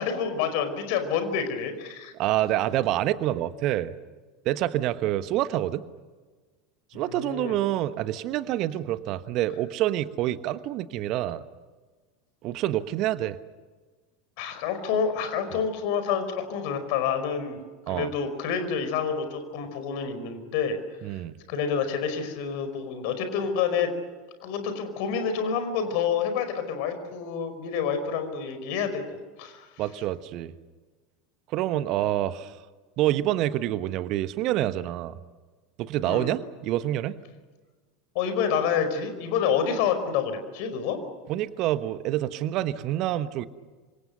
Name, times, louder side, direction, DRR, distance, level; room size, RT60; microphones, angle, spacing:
voice 1, 0.0-2.1 6.9-7.6 14.4-17.6 17.9-20.8 21.5-23.9 24.4-29.0 29.4-29.7 36.0-36.3 38.1-41.0, left 7 dB, 55° left, 9 dB, 5.1 m, -28 dB
voice 2, 2.2-3.9 4.4-5.9 6.9-11.4 12.4-13.4 17.9-18.1 21.0-21.4 29.8-30.5 31.5-32.6 33.0-35.2 35.8-37.2 41.3-43.4, right 13 dB, 50° right, 13 dB, 1.2 m, -27 dB
27.5 x 26.0 x 6.7 m, 1.3 s
figure-of-eight pair, 75°, 0 cm